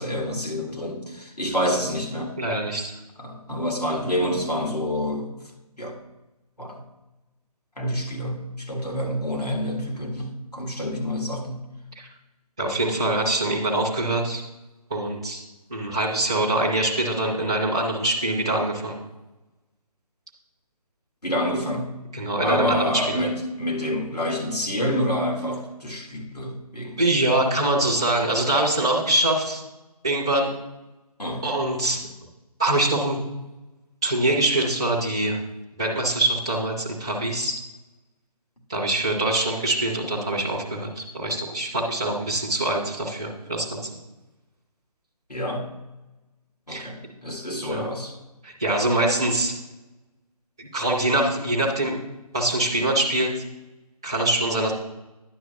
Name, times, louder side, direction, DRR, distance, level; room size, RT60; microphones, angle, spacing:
voice 1, 0.0-2.4 3.2-5.3 5.8-6.0 6.6-6.8 7.8-11.6 21.2-21.9 22.4-27.0 31.2-31.4 45.3-45.6 46.7-48.1, equal, 90° left, 1 dB, 1.7 m, -27 dB
voice 2, 2.4-2.9 12.0-12.1 12.6-14.4 14.9-15.4 15.7-19.0 22.1-23.2 27.0-29.6 30.0-30.5 31.4-32.0 32.6-33.2 34.0-35.4 35.8-37.6 38.7-44.0 46.7-46.9 47.7-47.9 48.4-49.6 50.6-52.0 52.3-53.3 54.0-54.7, right 2 dB, 5° right, -6 dB, 0.4 m, -24 dB
9.9 x 6.2 x 2.9 m, 1.0 s
figure-of-eight pair, 150°, 20 cm